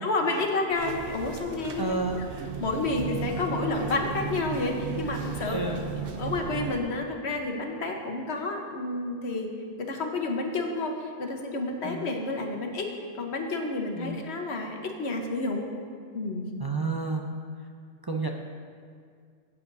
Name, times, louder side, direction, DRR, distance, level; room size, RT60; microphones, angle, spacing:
voice 1, 0.0-2.0 2.6-5.6 6.2-9.5 9.8-15.6 16.1-16.6, left 2 dB, 85° left, 2 dB, 1.3 m, -30 dB
sound 1, 0.7-6.8, right 5 dB, 65° right, 0.9 m, -35 dB
voice 2, 1.8-2.2 5.5-5.8 11.8-12.0 13.9-14.2 16.6-17.3 18.1-18.3, right 3 dB, 30° right, 1 dB, 0.4 m, -30 dB
16.0 x 8.5 x 2.7 m, 2.1 s
omnidirectional pair, 1.1 m